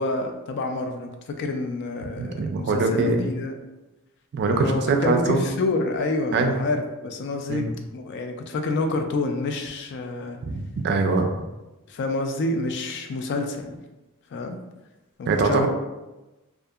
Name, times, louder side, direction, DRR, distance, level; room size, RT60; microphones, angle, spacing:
voice 1, 0.0-3.6 4.5-7.7 7.9-10.4 11.9-13.8 14.3-14.6 15.2-15.7, left 2 dB, 50° left, 5 dB, 0.3 m, -28 dB
voice 2, 2.1-3.3 4.3-5.4 6.3-6.6 7.5-7.6 10.5-11.3 15.3-15.7, right 3 dB, 50° right, 4 dB, 0.3 m, -23 dB
2.7 x 2.4 x 2.3 m, 1.1 s
head